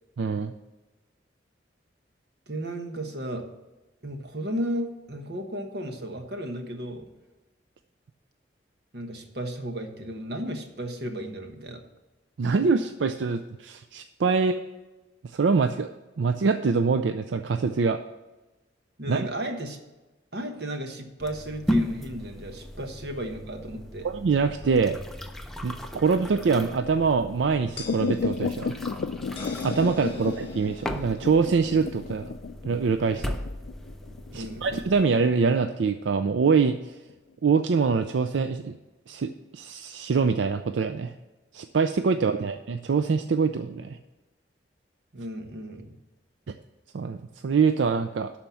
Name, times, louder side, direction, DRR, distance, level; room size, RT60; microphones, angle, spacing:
voice 1, 0.2-0.5 12.4-14.6 15.2-15.9 16.2-18.0 19.1-19.3 24.0-25.0 25.6-28.8 29.6-32.3 32.6-33.3 34.3-37.0 37.4-38.8 39.1-41.1 41.5-44.0 46.5-46.6 46.9-47.2 47.4-48.3, right 5 dB, 85° right, 8 dB, 0.4 m, -24 dB
voice 2, 2.5-3.5 4.0-7.1 8.9-11.8 19.0-19.8 20.3-24.1 30.1-30.3 33.2-33.3 34.3-34.7 42.2-42.4 45.1-45.9, right 1 dB, 60° right, 5 dB, 1.2 m, -34 dB
sound 1, 21.2-35.0, left 1 dB, ahead, 0.5 m, -36 dB
sound 2, 27.8-32.1, left 3 dB, 30° left, 1.3 m, -45 dB
sound 3, 27.9-36.7 37.1-37.2, left 5 dB, 65° left, 0.4 m, -33 dB
11.5 x 4.4 x 7.0 m, 1.1 s
head